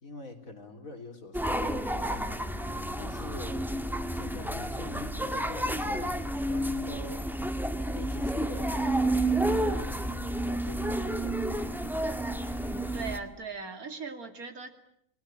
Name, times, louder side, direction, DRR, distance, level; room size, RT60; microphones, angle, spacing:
voice 1, 0.0-2.5 3.0-3.6 4.1-7.3 7.9-11.5, left 2 dB, 65° left, 5 dB, 3.8 m, -44 dB
sound 1, 1.3-13.2, right 1 dB, ahead, 1.6 m, -30 dB
voice 2, 12.9-14.7, right 5 dB, 80° right, 7 dB, 3.1 m, -39 dB
29.5 x 20.5 x 8.9 m, 0.75 s
omnidirectional pair, 1.5 m